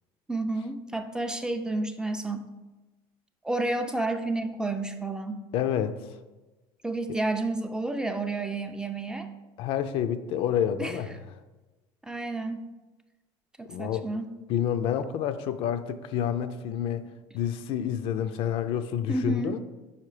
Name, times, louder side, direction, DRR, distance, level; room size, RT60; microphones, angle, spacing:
voice 1, 0.3-2.5 3.4-5.4 6.8-9.3 10.8-11.0 12.0-12.7 13.6-14.3 19.1-19.6, right 2 dB, 5° right, 6 dB, 0.3 m, -30 dB
voice 2, 5.5-6.0 9.6-11.2 13.7-14.1 14.5-17.0 17.3-19.6, left 9 dB, 60° left, 11 dB, 0.4 m, -28 dB
5.7 x 4.4 x 4.8 m, 1.2 s
cardioid pair, 145°, 11 cm